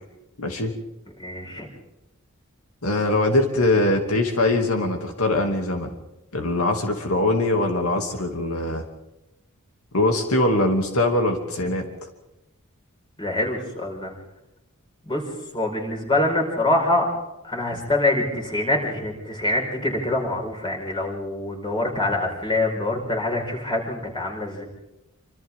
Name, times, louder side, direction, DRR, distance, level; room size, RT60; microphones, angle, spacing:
voice 1, 0.4-0.7 2.8-5.9 6.3-8.8 9.9-11.8, left 2 dB, 85° left, 4 dB, 2.6 m, -22 dB
voice 2, 1.2-1.7 13.2-14.1 15.0-15.2 15.5-17.1 17.4-24.6, left 2 dB, 20° left, 1 dB, 5.0 m, -25 dB
27.0 x 26.0 x 3.7 m, 0.95 s
head